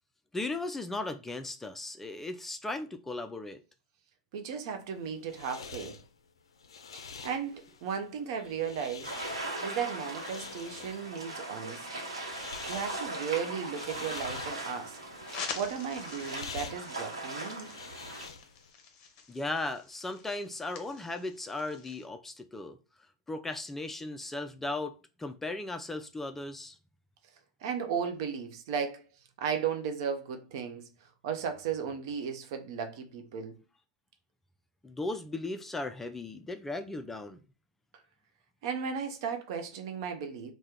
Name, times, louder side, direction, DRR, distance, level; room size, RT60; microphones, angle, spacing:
voice 1, 0.3-3.6 19.3-22.8 23.3-26.8 34.8-37.4, left 2 dB, 10° left, 0.3 m, -37 dB
voice 2, 4.3-6.0 6.9-9.1 9.6-12.0 12.7-15.0 15.5-17.7 27.6-29.0 29.4-33.6 38.6-40.5, right 7 dB, 60° right, 0.7 m, -35 dB
sound 1, 4.8-18.7, left 5 dB, 85° left, 0.4 m, -47 dB
sound 2, 9.0-18.3, right 2 dB, 90° right, 0.9 m, -39 dB
sound 3, 15.3-22.1, left 6 dB, 45° left, 0.7 m, -46 dB
2.8 x 2.1 x 3.6 m
hypercardioid pair, 100°, 3 cm